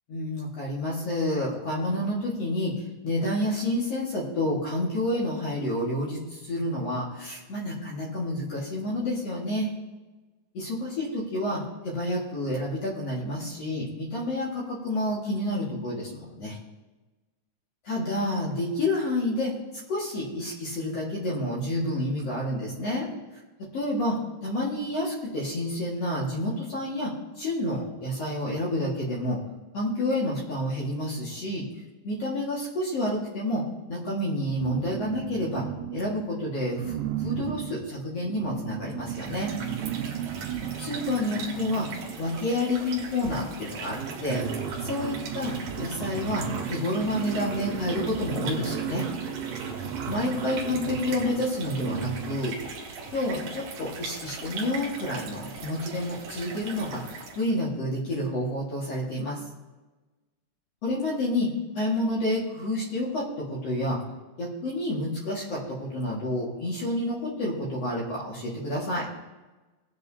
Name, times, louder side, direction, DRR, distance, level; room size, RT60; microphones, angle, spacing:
voice 1, 0.1-9.7 10.5-16.6 17.9-19.5 19.9-23.1 23.6-29.4 29.7-31.7 32.0-35.6 35.9-39.5 40.8-41.9 42.2-44.4 44.8-49.1 50.0-52.6 53.1-57.0 57.4-59.4 60.8-64.0 64.4-69.1, left 1 dB, 50° left, -5 dB, 2.0 m, -29 dB
sound 1, 34.5-36.3 36.7-42.4 43.4-43.5 43.7-52.6, right 8 dB, 80° right, 3.3 m, -35 dB
sound 2, 39.0-57.6, right 4 dB, 60° right, 3.1 m, -40 dB
19.0 x 7.7 x 2.8 m, 1.2 s
omnidirectional pair, 5.4 m